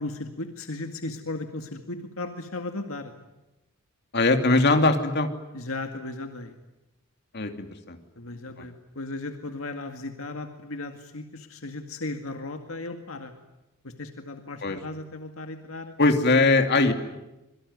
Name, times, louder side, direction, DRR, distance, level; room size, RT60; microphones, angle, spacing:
voice 1, 0.0-3.1 5.5-6.5 8.2-13.3 13.8-15.9, left 2 dB, 75° left, 5 dB, 2.1 m, -36 dB
voice 2, 4.1-5.3 7.3-8.0 14.6-14.8 16.0-16.9, left 3 dB, 50° left, 6 dB, 2.8 m, -21 dB
26.5 x 23.0 x 9.7 m, 0.98 s
head